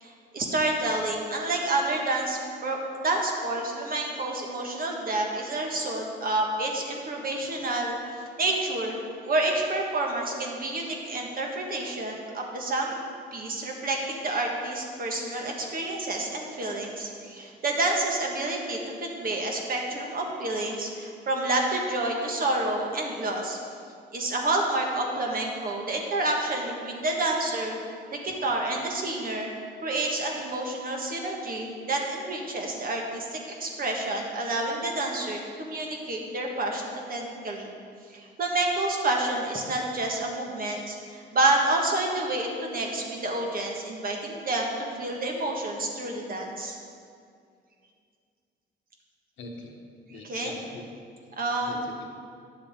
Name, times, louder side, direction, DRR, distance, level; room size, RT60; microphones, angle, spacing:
voice 1, 0.0-9.0 9.2-13.0 13.3-23.6 24.1-27.8 28.1-29.5 29.8-37.7 38.1-46.8 50.1-50.5 51.4-51.8, right 2 dB, 45° right, 0 dB, 1.5 m, -29 dB
voice 2, 49.4-49.7 50.1-50.8 51.6-52.0, left 2 dB, 75° left, 2 dB, 1.2 m, -42 dB
10.0 x 7.4 x 3.6 m, 2.3 s
cardioid pair, 90°, 20 cm